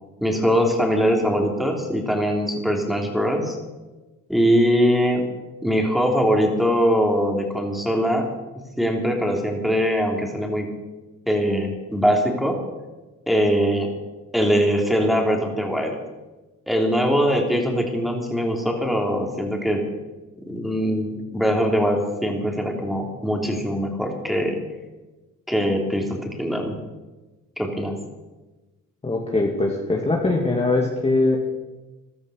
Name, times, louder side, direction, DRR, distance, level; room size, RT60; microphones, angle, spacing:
voice 1, 0.2-3.6 4.3-5.3 5.6-8.3 8.8-10.7 11.3-12.6 13.3-13.9 14.3-16.0 16.7-19.8 20.5-24.6 25.5-26.8 27.6-28.0, equal, ahead, 1 dB, 3.5 m, -22 dB
voice 2, 29.0-31.4, left 2 dB, 20° left, -1 dB, 2.4 m, -21 dB
15.0 x 12.5 x 6.5 m, 1.2 s
cardioid pair, 90°, 30 cm